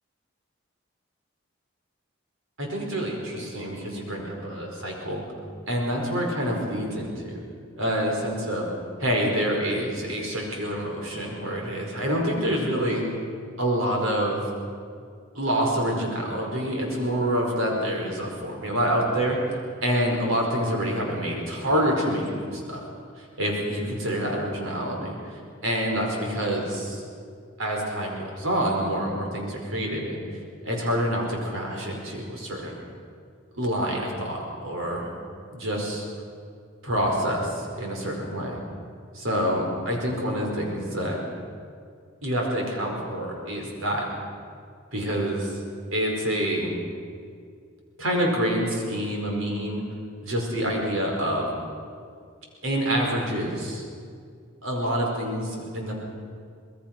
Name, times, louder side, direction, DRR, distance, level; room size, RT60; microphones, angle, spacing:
voice 1, 2.6-5.2 5.7-7.4 7.8-8.7 9.0-13.0 13.6-14.5 15.3-22.8 23.2-27.0 27.6-30.2 30.6-32.7 33.5-35.1 35.5-36.0 36.8-38.6 39.1-41.2 42.2-44.1 44.9-45.6 45.9-46.7 48.0-49.8 50.2-51.5 52.6-53.8 54.6-56.0, equal, 80° right, 0 dB, 5.0 m, -27 dB
25.0 x 20.0 x 6.0 m, 2.2 s
head